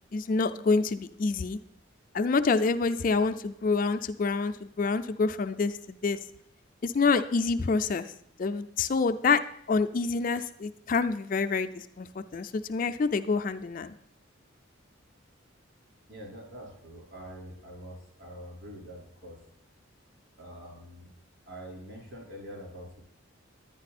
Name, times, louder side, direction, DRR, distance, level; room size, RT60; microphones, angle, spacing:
voice 1, 0.1-1.6 2.1-6.2 6.8-8.1 8.4-9.4 9.7-13.9, left 4 dB, 40° left, 9 dB, 0.4 m, -27 dB
voice 2, 16.1-19.4 20.4-21.1 21.5-23.0, equal, 60° right, -2 dB, 4.1 m, -45 dB
10.5 x 9.7 x 4.2 m, 0.71 s
head